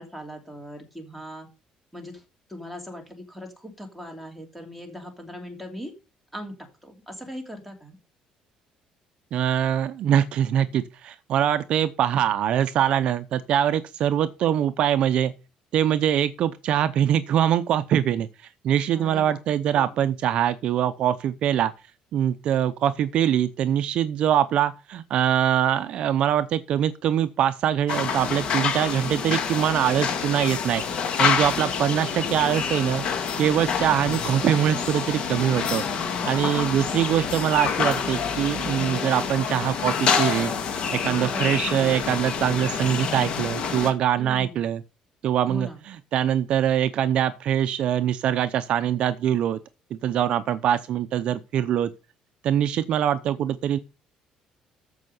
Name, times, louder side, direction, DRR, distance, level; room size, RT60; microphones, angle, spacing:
voice 1, 0.0-1.5 1.9-2.2 2.5-5.9 6.3-8.0 18.9-19.4 19.7-20.0 36.3-36.8 41.2-41.8 44.2-44.7 45.5-45.8, equal, ahead, 2.9 m, -39 dB
voice 2, 9.3-15.3 15.7-21.7 22.1-30.8 31.2-33.1 33.4-35.8 36.2-40.5 40.9-44.8 45.2-49.6 50.0-51.9 52.4-53.8, right 10 dB, 45° right, 0.6 m, -23 dB
sound 1, 27.9-43.9, left 6 dB, 40° left, 2.1 m, -27 dB
14.0 x 5.6 x 5.4 m
cardioid pair, 180°, 2 cm